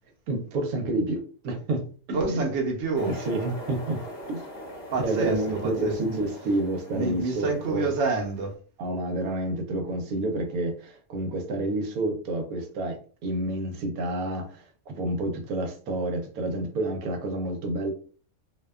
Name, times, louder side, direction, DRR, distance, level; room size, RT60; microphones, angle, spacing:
voice 1, 0.3-2.5 3.0-4.0 4.3-4.4 5.0-7.9 8.8-17.9, right 2 dB, 85° right, 1.1 m, -29 dB
voice 2, 2.1-3.1 4.9-5.9 6.9-8.6, right 3 dB, 60° right, 0.9 m, -27 dB
sound 1, 2.9-8.5, left 1 dB, 30° left, 1.1 m, -42 dB
2.6 x 2.2 x 2.2 m
omnidirectional pair, 1.5 m